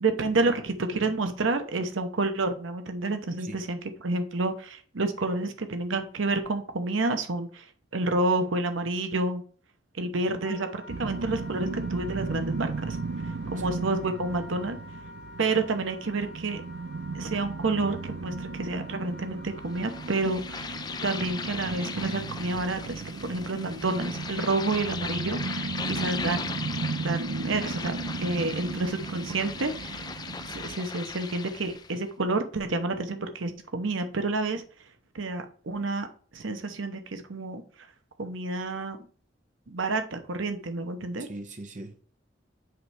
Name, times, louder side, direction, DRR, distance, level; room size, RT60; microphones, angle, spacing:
voice 1, 0.0-7.7 7.9-9.4 10.0-13.0 13.2-14.8 15.4-16.6 17.1-26.4 27.0-27.9 28.2-34.6 35.1-36.1 36.3-37.6 38.2-39.0 39.7-41.3, right 3 dB, 85° right, 7 dB, 0.9 m, -29 dB
voice 2, 3.4-3.7 13.4-13.7 41.2-42.0, right 2 dB, 40° right, 6 dB, 0.9 m, -41 dB
Wind instrument woodwind instrument, 10.4-20.3, left 3 dB, 45° left, 1.8 m, -48 dB
sound 1, 10.9-30.8, right 4 dB, 55° right, 0.4 m, -36 dB
sound 2, 19.7-32.0, left 5 dB, 20° left, 0.4 m, -38 dB
8.0 x 3.2 x 4.8 m, 0.43 s
head